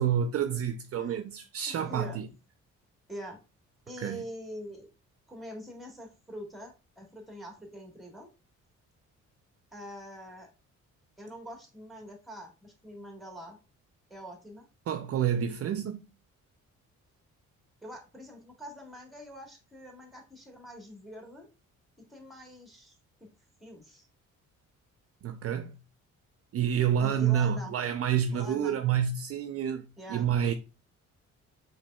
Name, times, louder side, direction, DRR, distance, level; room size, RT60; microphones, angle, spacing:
voice 1, 0.0-2.3 4.0-4.2 14.9-16.0 25.2-25.8 26.5-30.5, right 9 dB, 50° right, 0.4 m, -28 dB
voice 2, 1.7-2.2 3.1-3.4 3.9-4.9 5.3-8.3 9.7-10.5 11.2-13.6 14.1-14.7 17.8-21.5 22.0-22.9 23.2-23.3 23.6-24.1 27.0-27.7 28.3-28.8 30.0-30.3, equal, ahead, 1.4 m, -44 dB
4.7 x 3.1 x 2.2 m
cardioid pair, 90°, 30 cm